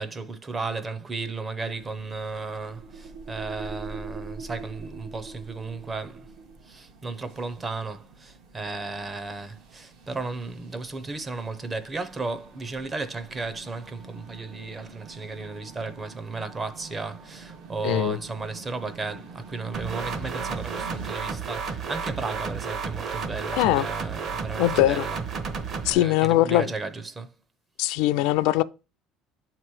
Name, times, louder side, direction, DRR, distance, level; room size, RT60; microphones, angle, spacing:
voice 1, 0.0-6.3 6.6-25.2 25.9-27.3, right 3 dB, 20° right, 0.6 m, -34 dB
sound 1, 1.6-21.1, right 4 dB, 65° right, 1.0 m, -48 dB
sound 2, 1.8-6.6, right 4 dB, 85° right, 1.0 m, -41 dB
voice 2, 17.8-18.2 23.5-23.9 24.6-25.1 25.8-26.7 27.8-28.6, left 15 dB, 80° left, 0.3 m, -21 dB
sound 3, 19.7-25.9, right 5 dB, 40° right, 0.9 m, -32 dB
8.0 x 3.0 x 4.6 m
cardioid pair, 145°, 0 cm